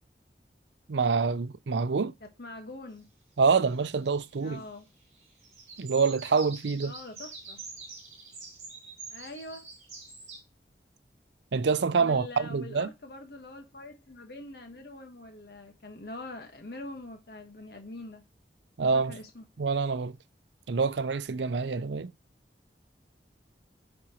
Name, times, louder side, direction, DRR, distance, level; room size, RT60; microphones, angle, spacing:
voice 1, 0.9-2.1 3.4-4.6 5.8-6.9 11.5-12.9 18.8-19.2 19.6-20.2 20.7-22.1, right 5 dB, 90° right, 0.5 m, -26 dB
voice 2, 2.2-3.1 4.4-4.9 6.8-7.6 9.1-9.6 12.0-18.2 18.9-19.4, left 2 dB, 65° left, 1.3 m, -44 dB
sound 1, 3.8-4.7 5.0-10.4, right 4 dB, 40° right, 3.6 m, -46 dB
9.6 x 4.3 x 2.9 m
head